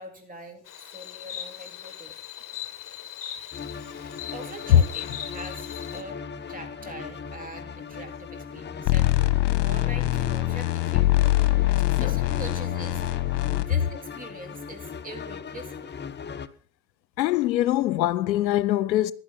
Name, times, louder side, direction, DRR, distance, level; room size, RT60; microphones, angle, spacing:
voice 1, 0.0-2.2 4.3-6.2 6.5-9.1 9.6-11.1 11.9-15.9, right 1 dB, 15° right, 3.7 m, -43 dB
Insect, 0.7-6.0, left 10 dB, 40° left, 1.9 m, -39 dB
sound 1, 3.5-16.5, left 6 dB, 20° left, 1.0 m, -38 dB
sound 2, 8.8-13.6, left 16 dB, 60° left, 1.6 m, -23 dB
voice 2, 17.2-19.1, left 12 dB, 85° left, 0.8 m, -22 dB
15.0 x 11.0 x 6.0 m
hypercardioid pair, 80°, 50 cm